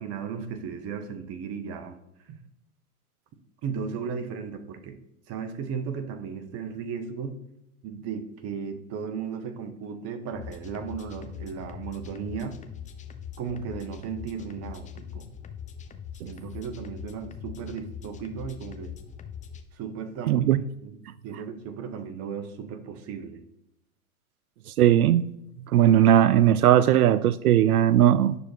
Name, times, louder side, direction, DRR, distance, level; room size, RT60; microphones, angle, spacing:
voice 1, 0.0-2.0 2.3-2.4 3.6-5.0 5.3-7.4 7.8-12.6 13.4-15.3 16.2-18.9 19.7-20.5 20.8-21.0 21.2-23.4, right 6 dB, 35° right, 10 dB, 1.3 m, -35 dB
sound 1, 10.3-19.6, left 8 dB, 15° left, 0.7 m, -41 dB
voice 2, 20.3-20.6 24.7-25.2 25.7-28.4, right 11 dB, 85° right, 17 dB, 0.5 m, -18 dB
9.5 x 6.4 x 4.5 m, 0.79 s
hypercardioid pair, 110°, 43 cm